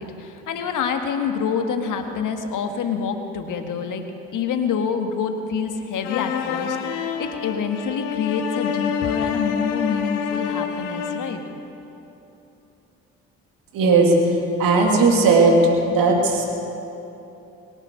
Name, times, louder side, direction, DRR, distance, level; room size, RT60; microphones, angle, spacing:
voice 1, 0.0-4.0 4.3-11.4, left 6 dB, 55° left, 6 dB, 1.6 m, -26 dB
sound 1, 6.0-11.4, left 7 dB, 80° left, 1.1 m, -27 dB
voice 2, 13.7-14.1 14.6-15.6 15.9-16.4, right 4 dB, 65° right, 1 dB, 2.8 m, -16 dB
22.5 x 9.7 x 6.4 m, 3.0 s
hypercardioid pair, 45°, 36 cm